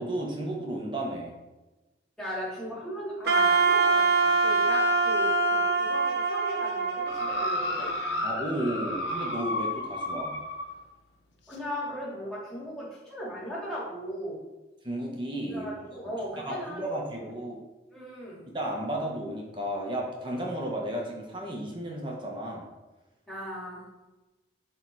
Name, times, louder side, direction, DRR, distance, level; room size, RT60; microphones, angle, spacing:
voice 1, 0.0-1.4 8.2-10.4 14.8-15.7 16.4-17.6 18.5-22.6, right 1 dB, 25° right, -1 dB, 1.4 m, -33 dB
voice 2, 2.2-7.9 11.5-14.4 15.5-17.3 17.9-18.5 23.3-23.8, equal, 5° left, -7 dB, 3.0 m, -37 dB
Wind instrument woodwind instrument, 3.3-8.3, right 3 dB, 60° right, 0.9 m, -24 dB
sound 1, 7.1-10.7 11.5-11.6, left 1 dB, 85° left, 1.3 m, -32 dB
11.5 x 3.9 x 4.8 m, 1.1 s
head